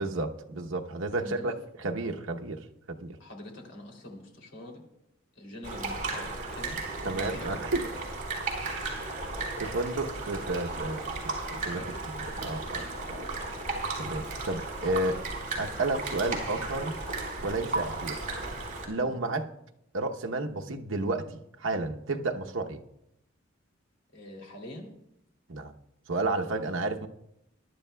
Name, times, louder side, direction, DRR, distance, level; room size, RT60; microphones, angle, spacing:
voice 1, 0.0-1.5 1.8-2.6 2.9-3.2 7.0-7.8 9.6-11.0 11.5-11.8 12.1-12.8 14.0-15.2 15.6-17.0 17.4-18.2 18.9-19.5 19.9-22.8 25.5-25.7 26.1-27.1, right 2 dB, 75° right, 0.9 m, -31 dB
voice 2, 1.2-1.6 2.0-2.1 3.2-4.8 5.3-7.5 11.7-11.9 13.4-13.5 19.0-19.1 24.1-24.9, left 1 dB, 65° left, 3.0 m, -45 dB
sound 1, 5.6-18.9, right 3 dB, 40° right, 4.1 m, -35 dB
22.0 x 11.5 x 2.2 m
head